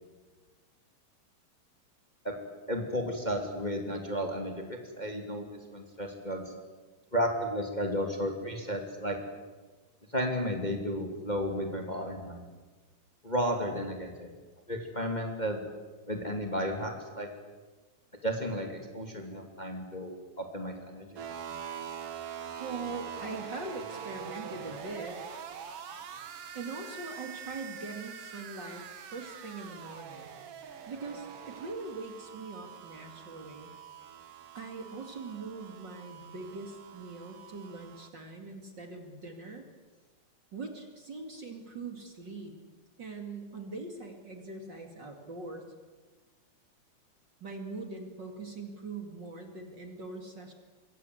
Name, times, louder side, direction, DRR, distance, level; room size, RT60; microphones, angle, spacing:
voice 1, 2.7-6.4 7.1-9.2 10.1-12.4 13.2-14.3 14.7-15.6 16.1-17.3 18.2-21.1, equal, 15° left, 3 dB, 2.5 m, -33 dB
sound 1, 21.2-38.1, right 8 dB, 55° right, 2.4 m, -44 dB
voice 2, 22.6-25.2 26.5-30.3 30.9-33.7 34.5-39.6 40.5-42.5 43.0-45.6 47.4-50.5, right 3 dB, 40° right, 4 dB, 2.8 m, -42 dB
27.0 x 23.0 x 8.0 m, 1.3 s
omnidirectional pair, 3.3 m